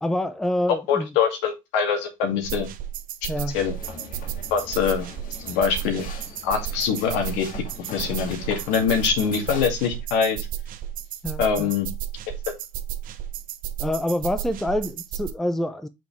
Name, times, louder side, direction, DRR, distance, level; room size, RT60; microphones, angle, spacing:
voice 1, 0.0-1.1 3.3-3.6 11.2-11.8 13.8-15.9, left 1 dB, ahead, 0.6 m, -26 dB
voice 2, 0.9-2.7 3.5-3.7 4.5-5.1 5.4-6.0 6.4-10.4 11.4-11.9, left 6 dB, 65° left, 2.3 m, -24 dB
sound 1, 2.4-15.3, right 11 dB, 45° right, 0.9 m, -33 dB
sound 2, 3.5-9.7, left 3 dB, 45° left, 2.0 m, -41 dB
6.1 x 5.0 x 3.2 m
supercardioid pair, 90°, 19 cm